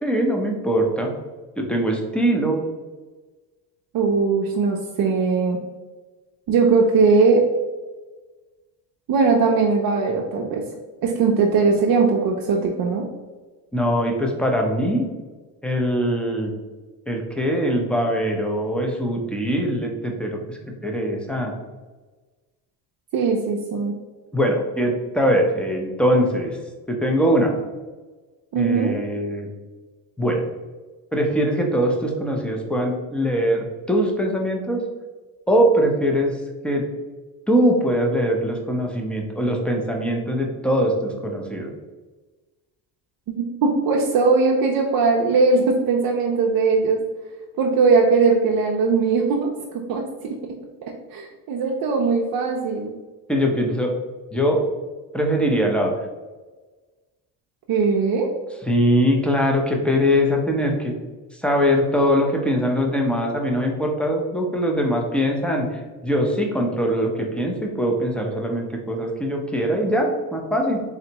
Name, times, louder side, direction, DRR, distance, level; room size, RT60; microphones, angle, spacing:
voice 1, 0.0-1.1 1.6-2.6 13.7-15.0 15.6-16.5 17.1-21.5 24.3-26.6 26.9-27.6 28.5-29.5 30.2-30.4 31.1-34.8 35.5-36.4 36.6-36.8 37.5-41.7 53.3-53.9 54.3-54.7 55.1-55.9 58.7-60.9 61.3-70.8, equal, ahead, 1 dB, 0.7 m, -22 dB
voice 2, 3.9-5.6 6.5-7.4 9.1-10.6 11.0-13.0 23.1-23.9 28.5-28.9 43.3-47.0 47.6-50.0 51.1-53.0 57.7-58.3, right 4 dB, 55° right, 0 dB, 0.6 m, -19 dB
3.9 x 3.3 x 2.9 m, 1.3 s
cardioid pair, 95°, 44 cm